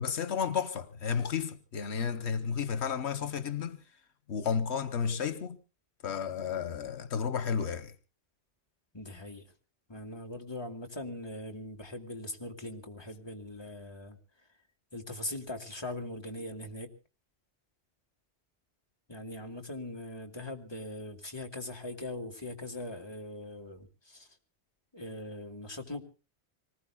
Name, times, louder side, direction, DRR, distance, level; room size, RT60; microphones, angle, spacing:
voice 1, 0.0-3.8 4.3-5.6 6.0-7.9, left 6 dB, 85° left, 1.2 m, -32 dB
voice 2, 8.9-9.4 9.9-14.2 14.9-16.9 19.1-24.3 24.9-26.0, left 1 dB, 25° left, 2.1 m, -41 dB
26.0 x 19.5 x 2.3 m
omnidirectional pair, 1.1 m